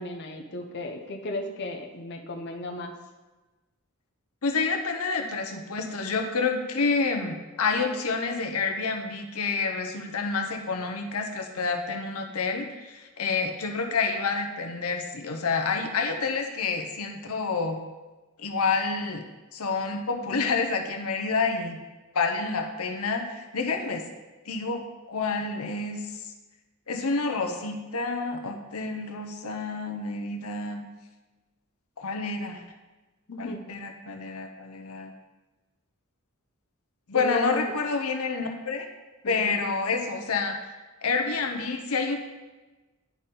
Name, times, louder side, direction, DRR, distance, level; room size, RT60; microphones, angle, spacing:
voice 1, 0.0-2.9 33.3-33.6 37.1-37.7 39.2-39.5, left 2 dB, 55° left, 2 dB, 0.7 m, -34 dB
voice 2, 4.4-17.8 18.4-19.2 19.5-21.8 22.1-24.0 24.4-26.0 26.9-30.8 32.0-32.6 33.4-35.1 37.1-38.9 39.3-40.6 41.0-42.2, left 4 dB, 80° left, 4 dB, 0.9 m, -28 dB
10.5 x 4.2 x 3.8 m, 1.2 s
head